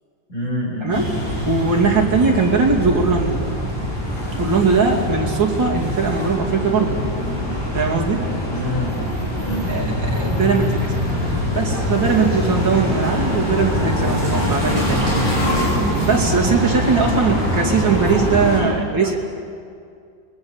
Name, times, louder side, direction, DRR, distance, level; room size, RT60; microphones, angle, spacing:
voice 1, 0.3-1.1 8.5-8.9 9.4-9.9 17.2-19.2, left 1 dB, 45° left, -5 dB, 7.0 m, -29 dB
sound 1, 0.9-18.6, equal, 15° right, 7.8 m, -23 dB
voice 2, 1.5-3.5 4.4-7.0 7.7-8.2 9.7-10.9 11.5-15.1 16.1-19.2, right 4 dB, 80° right, -1 dB, 3.5 m, -20 dB
26.0 x 21.0 x 7.3 m, 2.3 s
omnidirectional pair, 2.0 m